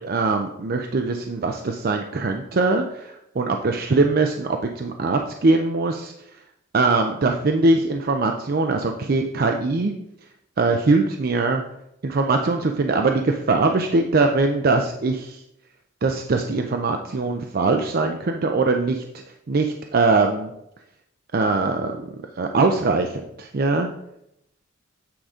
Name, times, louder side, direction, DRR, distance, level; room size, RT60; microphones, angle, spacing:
voice 1, 0.0-6.1 6.7-9.9 10.6-11.6 12.0-15.4 16.0-18.9 19.5-20.5 21.3-22.1 22.4-23.9, right 3 dB, 50° right, 4 dB, 0.5 m, -21 dB
8.7 x 3.7 x 5.0 m, 0.81 s
head